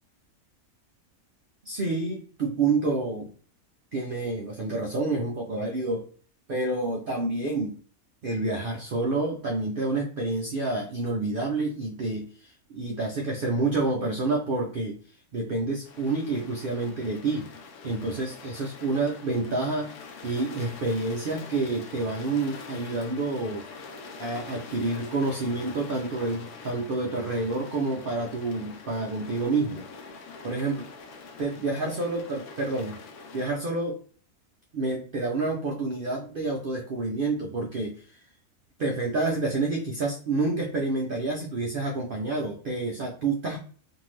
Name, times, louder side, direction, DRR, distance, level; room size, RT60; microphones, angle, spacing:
voice 1, 1.6-3.3 3.9-6.1 6.5-7.8 8.2-15.0 15.3-17.5 17.8-19.9 20.2-23.6 24.2-29.9 30.4-30.8 31.4-33.0 33.3-34.0 34.7-38.2 38.8-43.6, right 3 dB, 85° right, 0 dB, 0.4 m, -28 dB
sound 1, 15.8-33.5, left 4 dB, 80° left, 1.1 m, -44 dB
2.7 x 2.6 x 3.1 m, 0.43 s
omnidirectional pair, 1.6 m